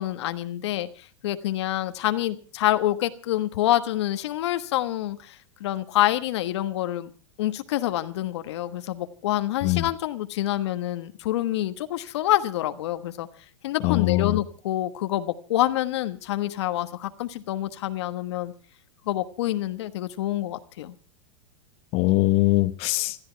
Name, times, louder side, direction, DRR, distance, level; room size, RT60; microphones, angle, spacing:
voice 1, 0.0-7.1 7.4-13.3 13.6-18.5 19.1-20.9, left 14 dB, 65° left, 10 dB, 1.3 m, -27 dB
voice 2, 13.8-14.4 21.9-23.2, left 19 dB, 40° left, 9 dB, 1.2 m, -22 dB
21.0 x 13.5 x 4.5 m, 0.38 s
supercardioid pair, 140°, 15 cm